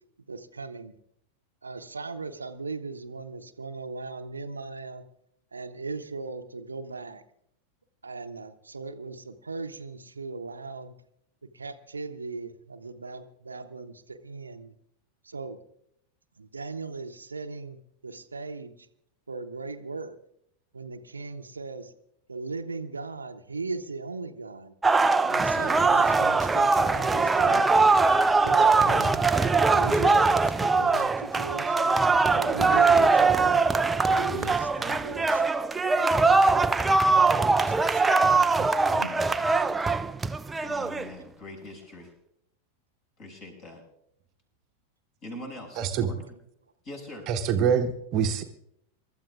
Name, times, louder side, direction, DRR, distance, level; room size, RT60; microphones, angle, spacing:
voice 1, 0.3-0.9 1.6-5.0 5.5-7.2 8.0-10.9 11.4-14.7 15.2-15.6 16.4-17.8 18.0-18.9 19.3-20.2 20.7-21.9 22.3-24.7 25.3-28.0 28.4-29.3 29.7-32.0 32.3-33.6 34.0-35.4 35.9-36.7 37.3-38.3 38.6-39.1, right 3 dB, 75° right, 9 dB, 0.8 m, -38 dB
sound 1, 24.8-41.1, right 3 dB, 10° right, 0.4 m, -22 dB
voice 2, 39.0-39.5 40.6-42.1 43.2-43.8 45.2-46.4 46.8-47.3, left 1 dB, 35° left, 2 dB, 6.5 m, -43 dB
voice 3, 45.8-46.1 47.3-48.4, right 7 dB, 35° right, 6 dB, 1.0 m, -25 dB
27.0 x 13.0 x 2.4 m, 0.73 s
figure-of-eight pair, 90°, 0 cm